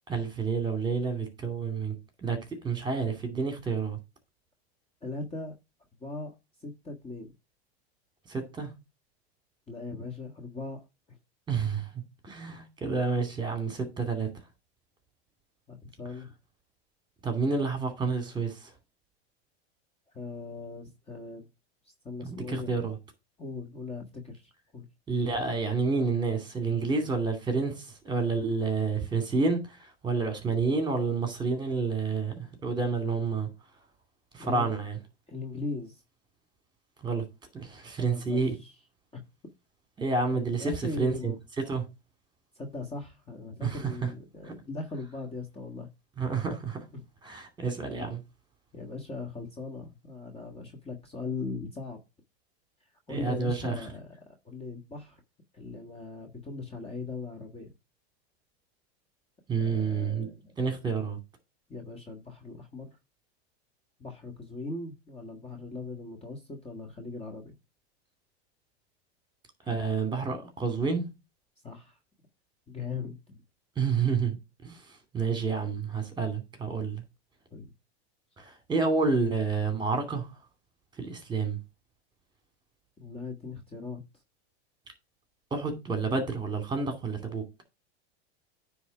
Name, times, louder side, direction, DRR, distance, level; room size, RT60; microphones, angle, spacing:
voice 1, 0.1-1.9 2.2-4.0 8.3-8.7 11.5-11.9 12.2-14.3 17.2-18.7 22.2-23.0 25.1-33.5 34.3-35.0 37.0-37.2 37.5-38.5 40.0-41.8 43.6-43.8 44.4-44.5 46.2-46.8 47.2-48.2 53.1-53.8 59.5-60.3 60.6-61.2 69.7-71.1 73.8-74.4 74.6-74.8 75.1-77.0 78.4-80.3 81.0-81.6 85.5-87.4, right 4 dB, 15° right, 2.4 m, -29 dB
voice 2, 5.0-5.5 6.0-6.3 6.6-7.3 9.7-10.8 15.7-16.3 17.7-17.9 20.1-21.4 22.0-22.8 23.4-24.8 34.4-34.7 35.3-36.0 38.0-38.7 39.1-39.2 40.3-41.3 42.5-45.9 46.9-47.0 48.7-52.0 53.1-54.1 54.4-55.2 55.5-57.7 59.6-60.4 61.7-62.9 64.0-67.5 69.6-69.8 71.6-72.0 72.7-73.3 77.5-77.7 83.0-84.0, left 3 dB, 20° left, 1.5 m, -39 dB
9.5 x 3.6 x 5.9 m
supercardioid pair, 125°, 32 cm